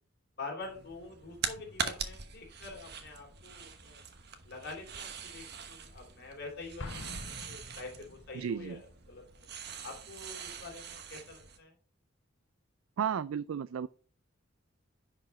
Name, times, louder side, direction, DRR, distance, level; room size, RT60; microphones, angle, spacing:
voice 1, 0.4-4.0 4.4-7.1 7.5-9.2 9.8-11.7, left 3 dB, 50° left, 3.1 m, -46 dB
sound 1, 0.6-11.6, right 6 dB, 50° right, 1.1 m, -43 dB
Explosion, 6.8-8.5, left 2 dB, 75° left, 1.2 m, -45 dB
voice 2, 8.3-8.8 13.0-13.9, right 8 dB, 85° right, 0.4 m, -33 dB
10.5 x 5.0 x 4.3 m
head